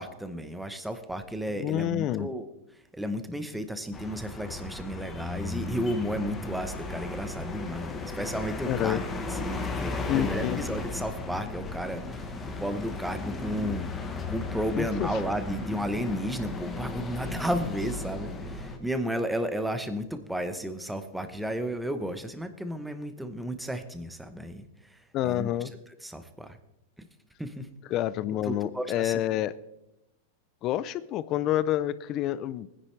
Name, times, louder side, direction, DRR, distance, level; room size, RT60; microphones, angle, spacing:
voice 1, 0.0-2.5 2.9-9.0 9.3-25.5 26.0-26.6 27.4-27.7 28.4-29.2, equal, 5° right, 8 dB, 0.8 m, -33 dB
voice 2, 1.6-2.3 8.7-9.0 10.1-10.6 14.8-15.2 25.1-25.7 27.9-29.5 30.6-32.7, left 13 dB, 35° left, 18 dB, 0.4 m, -28 dB
sound 1, 3.9-18.8, left 3 dB, 15° left, 1.2 m, -35 dB
19.0 x 10.0 x 3.2 m, 0.91 s
supercardioid pair, 155°, 0 cm